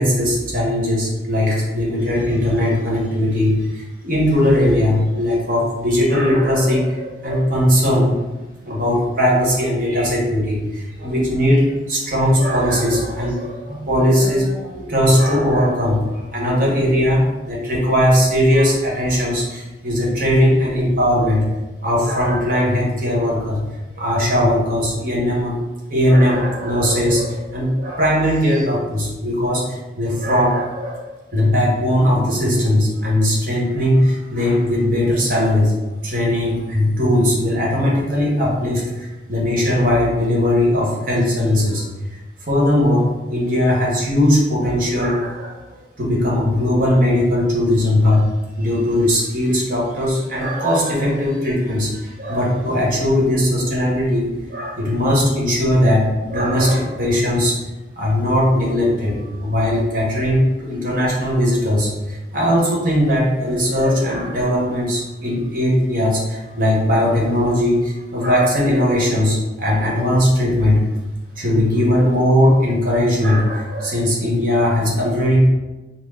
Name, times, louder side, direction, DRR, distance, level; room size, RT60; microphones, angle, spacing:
voice 1, 0.0-8.2 8.6-21.4 21.8-23.6 24.0-25.6 25.9-31.0 31.3-35.7 36.0-41.8 42.5-45.5 46.0-48.2 48.6-57.6 58.0-70.8 71.4-75.5, left 1 dB, 50° right, -4 dB, 1.1 m, -18 dB
4.2 x 2.0 x 3.7 m, 1.1 s
head